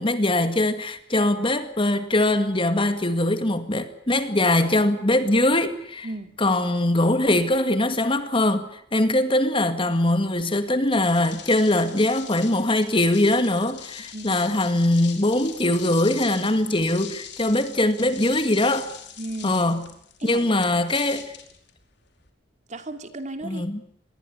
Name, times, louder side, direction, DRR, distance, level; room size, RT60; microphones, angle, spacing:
voice 1, 0.0-6.1 6.4-18.9 19.4-19.8 20.2-21.4 23.4-23.8, left 1 dB, 25° left, 2.0 m, -22 dB
voice 2, 6.0-6.4 14.1-14.5 19.2-19.6 20.2-20.6 22.7-23.6, right 2 dB, 40° right, 3.0 m, -35 dB
sound 1, 10.8-22.3, left 9 dB, 60° left, 4.7 m, -42 dB
26.5 x 21.5 x 8.2 m
head